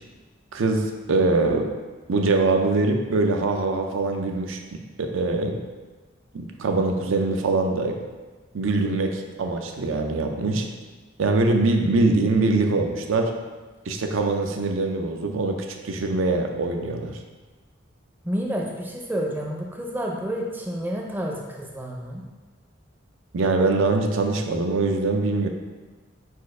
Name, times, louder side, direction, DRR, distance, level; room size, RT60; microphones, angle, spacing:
voice 1, 0.5-1.7 2.1-5.6 6.3-8.0 8.5-10.7 11.2-13.3 13.9-17.2 23.3-25.5, right 3 dB, 80° right, 4 dB, 0.5 m, -23 dB
voice 2, 18.2-22.2, equal, 10° right, -1 dB, 0.4 m, -29 dB
4.2 x 2.4 x 4.7 m, 1.3 s
head